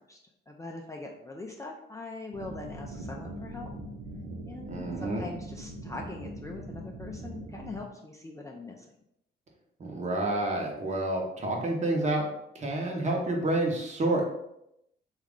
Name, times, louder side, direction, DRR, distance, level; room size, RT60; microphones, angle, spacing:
voice 1, 0.5-3.7 4.4-8.9, left 2 dB, 15° left, 0 dB, 0.4 m, -42 dB
sound 1, 2.3-7.8, right 1 dB, 70° right, 0.7 m, -41 dB
voice 2, 4.7-5.2 9.8-12.2 12.5-14.3, right 2 dB, 35° right, 0 dB, 0.9 m, -29 dB
3.0 x 2.4 x 3.6 m, 0.80 s
cardioid pair, 90°, 20 cm